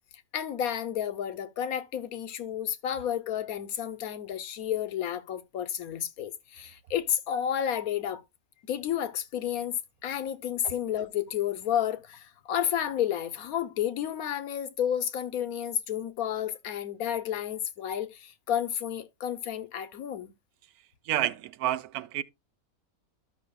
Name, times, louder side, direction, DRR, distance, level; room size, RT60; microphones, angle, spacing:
voice 1, 0.3-8.2 8.7-9.7 10.0-20.3, left 10 dB, 75° left, 1.2 m, -31 dB
voice 2, 21.1-22.2, right 12 dB, 85° right, 1.1 m, -29 dB
13.0 x 6.0 x 2.3 m
omnidirectional pair, 1.5 m